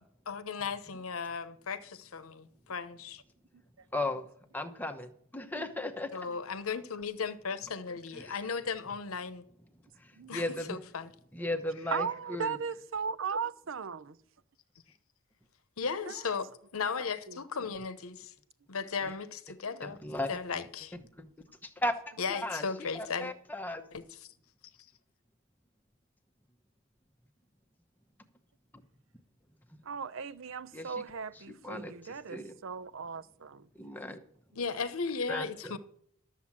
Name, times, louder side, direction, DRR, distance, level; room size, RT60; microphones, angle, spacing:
voice 1, 0.3-3.2 6.1-9.4 10.3-11.1 15.8-16.5 16.7-18.3 18.7-20.0 20.3-21.0 22.2-23.3 23.9-24.0 34.6-35.8, left 5 dB, 80° left, 0.9 m, -36 dB
voice 2, 3.9-4.3 4.5-6.1 8.1-8.4 10.0-10.8 11.3-12.6 19.8-20.6 21.2-21.3 21.6-21.9 22.3-23.8 28.7-28.8 29.7-29.8 30.7-30.9 31.5-32.5 33.8-34.2 35.3-35.8, left 1 dB, 10° left, 0.9 m, -36 dB
voice 3, 11.9-14.2 16.1-16.2 17.0-17.4 29.8-33.7, right 6 dB, 65° right, 0.6 m, -37 dB
12.5 x 7.2 x 7.4 m
head